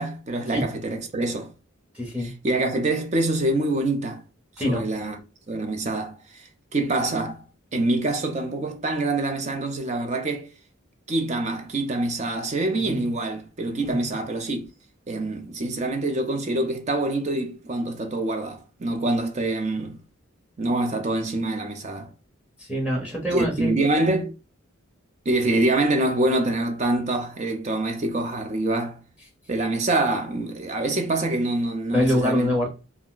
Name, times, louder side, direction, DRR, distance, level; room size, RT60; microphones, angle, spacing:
voice 1, 0.0-1.5 2.2-4.2 4.6-5.2 5.5-7.4 7.7-10.5 11.1-14.7 15.1-20.0 20.6-22.1 23.3-24.3 25.3-29.0 29.5-32.5, right 2 dB, 35° right, 0.5 m, -25 dB
voice 2, 1.9-2.3 4.6-4.9 12.8-13.1 13.8-14.1 22.6-23.8 31.9-32.7, equal, 5° right, 0.7 m, -25 dB
2.3 x 2.1 x 3.7 m
head